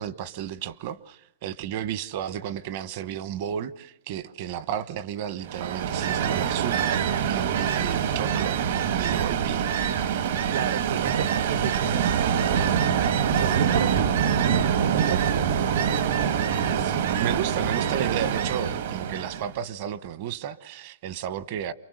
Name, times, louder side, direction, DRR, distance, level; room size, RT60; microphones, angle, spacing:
voice 1, 0.0-9.8 16.7-21.7, right 9 dB, 40° right, 1.1 m, -33 dB
Ocean, 5.4-19.5, right 8 dB, 55° right, 1.7 m, -25 dB
voice 2, 10.5-12.0 13.3-15.5, right 8 dB, 70° right, 1.3 m, -31 dB
28.5 x 24.0 x 8.0 m
supercardioid pair, 175°, 0 cm